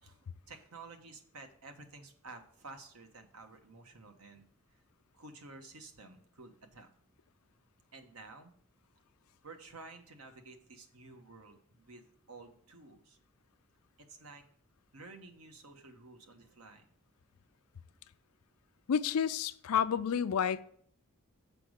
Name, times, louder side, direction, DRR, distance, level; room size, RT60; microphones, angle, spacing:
voice 1, 0.0-4.5 5.1-6.9 7.9-8.5 9.4-13.2 14.0-14.4 14.9-16.9, right 3 dB, 85° right, 1.2 m, -52 dB
voice 2, 18.9-20.6, left 7 dB, 85° left, 0.5 m, -30 dB
6.9 x 5.2 x 6.3 m
head